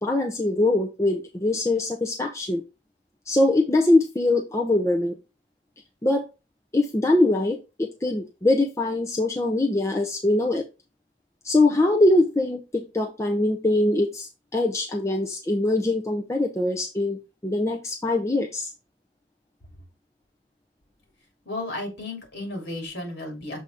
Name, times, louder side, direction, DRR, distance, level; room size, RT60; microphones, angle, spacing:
voice 1, 0.0-2.6 3.3-5.1 6.0-6.3 6.7-10.6 11.4-18.7, left 2 dB, 15° left, 2 dB, 0.6 m, -23 dB
voice 2, 21.5-23.6, left 2 dB, 65° left, 2 dB, 2.8 m, -33 dB
6.9 x 3.9 x 3.5 m, 0.27 s
head